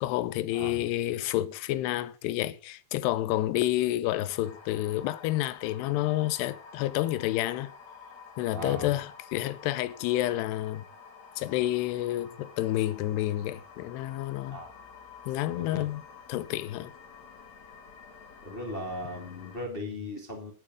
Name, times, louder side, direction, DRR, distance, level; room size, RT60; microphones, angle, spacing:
voice 1, 0.0-7.7 8.4-10.8 11.4-14.6 15.3-16.0 16.3-16.9, left 15 dB, 90° left, 2.8 m, -29 dB
voice 2, 0.5-0.9 8.5-9.0 14.5-14.7 15.6-15.8 18.4-20.5, left 1 dB, 20° left, 1.8 m, -37 dB
sound 1, 4.3-19.6, left 6 dB, 50° left, 2.7 m, -50 dB
11.0 x 8.7 x 6.2 m
omnidirectional pair, 4.7 m